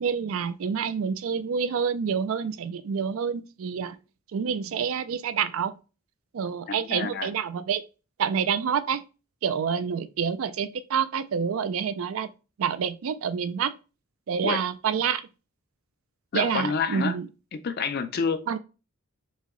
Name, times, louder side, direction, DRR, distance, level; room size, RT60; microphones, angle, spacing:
voice 1, 0.0-4.0 4.3-5.7 6.3-7.8 8.2-9.0 9.4-12.3 12.6-13.7 14.3-15.2 16.3-17.3 18.5-18.6, right 7 dB, 70° right, 0.4 m, -27 dB
voice 2, 6.8-7.3 14.4-14.6 16.3-17.2 17.5-18.6, left 5 dB, 45° left, 0.5 m, -28 dB
4.6 x 2.8 x 3.0 m
head